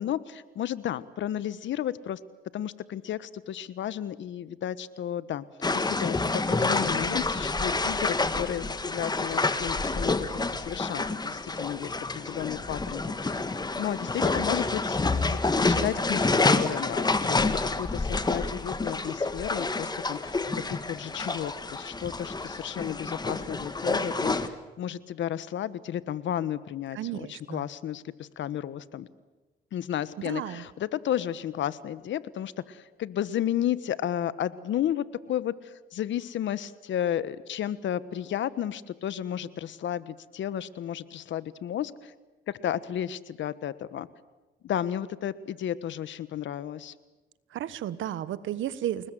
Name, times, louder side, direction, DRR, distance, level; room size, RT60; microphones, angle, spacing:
voice 1, 0.0-2.2 2.5-5.4 5.7-10.2 10.5-13.4 13.8-15.0 15.2-20.4 20.7-29.1 29.7-35.5 35.9-41.9 42.6-44.1 44.6-46.9, left 10 dB, 70° left, 16 dB, 1.3 m, -33 dB
sound 1, 5.6-24.5, left 3 dB, 20° left, 1.7 m, -28 dB
voice 2, 26.9-27.7 30.2-30.7 47.5-49.1, right 12 dB, 75° right, 16 dB, 1.3 m, -33 dB
29.5 x 20.0 x 7.7 m, 1.2 s
cardioid pair, 90°, 20 cm